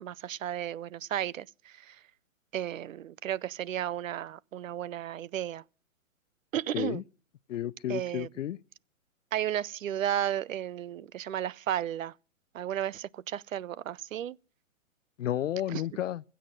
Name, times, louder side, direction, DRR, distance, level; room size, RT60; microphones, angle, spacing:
voice 1, 0.0-2.0 2.5-5.6 6.5-7.0 7.9-8.3 9.3-12.1 12.5-14.4 15.7-15.8, right 11 dB, 75° right, 0.6 m, -33 dB
voice 2, 7.5-8.6 15.2-16.2, left 12 dB, 65° left, 0.6 m, -32 dB
15.5 x 7.8 x 7.6 m
hypercardioid pair, 135°, 40 cm